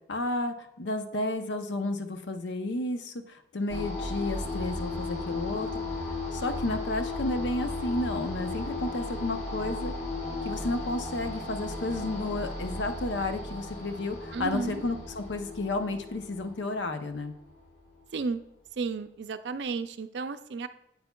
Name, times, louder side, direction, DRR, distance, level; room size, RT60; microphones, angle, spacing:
voice 1, 0.1-9.9 10.4-17.3, left 2 dB, 85° left, 8 dB, 0.7 m, -32 dB
sound 1, 3.7-17.9, left 2 dB, 35° left, 1.2 m, -35 dB
voice 2, 14.3-14.8 18.1-18.4 18.8-20.7, right 4 dB, 75° right, 11 dB, 0.4 m, -33 dB
8.3 x 8.0 x 2.3 m, 0.84 s
head